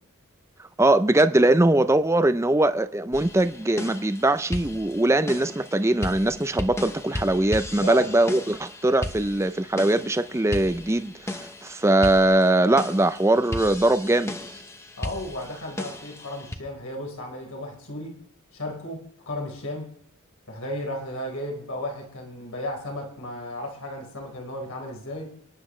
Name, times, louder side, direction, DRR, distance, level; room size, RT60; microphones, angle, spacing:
voice 1, 0.6-14.3, right 1 dB, 15° right, 0.5 m, -21 dB
sound 1, 3.1-16.6, left 1 dB, 15° left, 0.9 m, -36 dB
voice 2, 7.8-8.2 15.0-18.2 18.5-19.9 20.5-25.4, left 1 dB, 80° left, 4.6 m, -34 dB
28.5 x 10.5 x 3.2 m
head